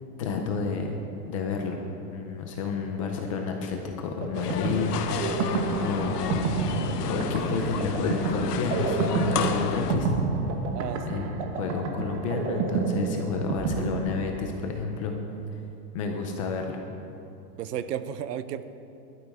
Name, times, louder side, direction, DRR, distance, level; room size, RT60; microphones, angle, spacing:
voice 1, 0.2-1.0 1.2-1.8 2.1-6.5 7.1-10.2 11.1-11.3 11.6-15.2 15.5-15.6 15.9-16.8, left 5 dB, 25° left, 2 dB, 0.5 m, -30 dB
sound 1, 4.2-14.7, right 5 dB, 50° right, 1.3 m, -30 dB
sound 2, 4.3-10.0, left 7 dB, 80° left, 1.2 m, -31 dB
voice 2, 10.7-11.3 17.6-18.6, right 9 dB, 85° right, 12 dB, 0.9 m, -33 dB
16.5 x 12.5 x 3.5 m, 2.8 s
supercardioid pair, 170°, 46 cm